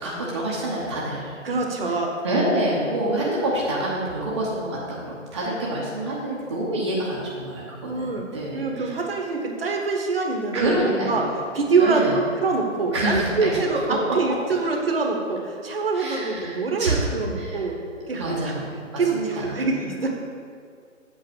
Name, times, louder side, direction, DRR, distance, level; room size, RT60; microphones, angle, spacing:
voice 1, 0.0-1.5 2.2-9.0 10.5-11.1 11.8-12.2 12.9-13.6 15.9-17.6 18.0-19.8, right 1 dB, 20° right, -6 dB, 0.8 m, -27 dB
voice 2, 1.4-2.1 7.9-8.2 8.5-11.3 11.5-17.8 18.1-18.5 19.0-20.1, right 4 dB, 45° right, 2 dB, 1.1 m, -24 dB
7.7 x 4.0 x 6.0 m, 2.2 s
figure-of-eight pair, 145°, 39 cm